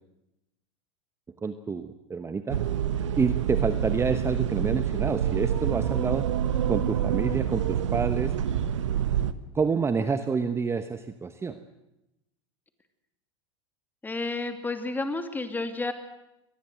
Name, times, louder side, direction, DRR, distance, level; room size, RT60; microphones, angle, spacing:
voice 1, 1.4-2.6 3.2-6.3 6.7-8.3 9.5-11.6, right 5 dB, 15° right, 10 dB, 1.2 m, -28 dB
sound 1, 2.5-9.3, right 9 dB, 80° right, 1.3 m, -27 dB
voice 2, 14.0-15.9, left 3 dB, 10° left, 7 dB, 2.7 m, -31 dB
23.5 x 19.5 x 7.8 m, 0.90 s
hypercardioid pair, 100°, 15 cm